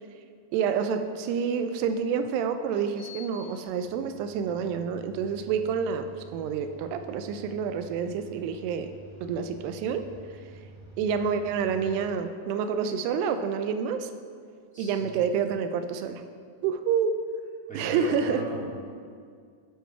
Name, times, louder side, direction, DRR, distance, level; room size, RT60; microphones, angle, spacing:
voice 1, 0.5-8.9 9.2-10.0 11.0-14.1 14.8-16.2 16.6-17.2 17.7-18.4, right 6 dB, 85° right, 8 dB, 2.6 m, -28 dB
sound 1, 1.8-1.9 2.7-12.1, right 1 dB, 45° right, 3.4 m, -49 dB
voice 2, 14.7-15.3 17.7-18.6, right 1 dB, 5° left, -9 dB, 1.1 m, -37 dB
12.5 x 5.2 x 4.5 m, 2.1 s
omnidirectional pair, 4.8 m